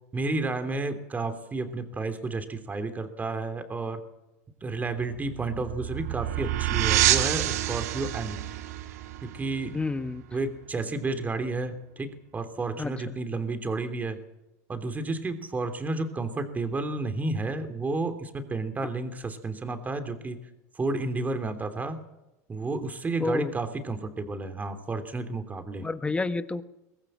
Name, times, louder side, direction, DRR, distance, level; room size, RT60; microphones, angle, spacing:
voice 1, 0.1-4.0 4.6-8.5 9.2-9.8 10.3-14.2 14.7-20.4 20.7-22.0 22.5-25.9, right 3 dB, 20° right, 8 dB, 3.0 m, -31 dB
sound 1, 5.0-10.4, right 13 dB, 80° right, 1.7 m, -28 dB
voice 2, 9.7-10.2 12.8-13.1 23.2-23.5 25.8-26.6, left 3 dB, 15° left, 12 dB, 1.2 m, -29 dB
23.0 x 18.5 x 7.6 m, 0.95 s
supercardioid pair, 105°, 9 cm